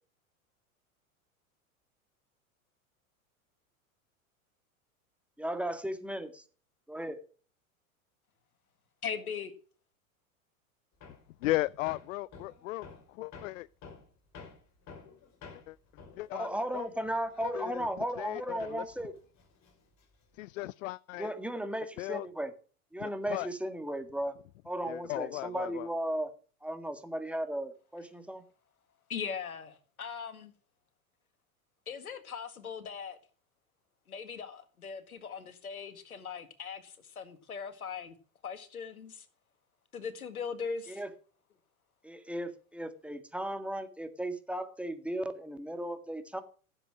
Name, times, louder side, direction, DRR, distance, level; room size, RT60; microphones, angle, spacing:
voice 1, 5.4-6.4 6.9-7.2 16.3-19.1 21.2-22.5 22.9-24.3 24.7-26.3 26.6-28.4 40.9-41.1 42.0-46.4, right 1 dB, 5° right, 1.8 m, -36 dB
voice 2, 9.0-9.5 29.1-30.5 31.9-33.2 34.1-38.2 38.4-39.3 39.9-41.0, left 6 dB, 90° left, 1.9 m, -40 dB
Hammer, 11.0-18.3 18.6-20.4, left 5 dB, 40° left, 4.7 m, -52 dB
voice 3, 11.4-13.7 15.7-15.8 16.2-16.5 16.7-16.9 17.4-17.9 18.2-18.8 20.3-21.3 22.0-22.3 23.0-23.5 24.8-25.9, left 18 dB, 65° left, 0.5 m, -36 dB
15.5 x 7.9 x 6.1 m
hypercardioid pair, 95°, 42 cm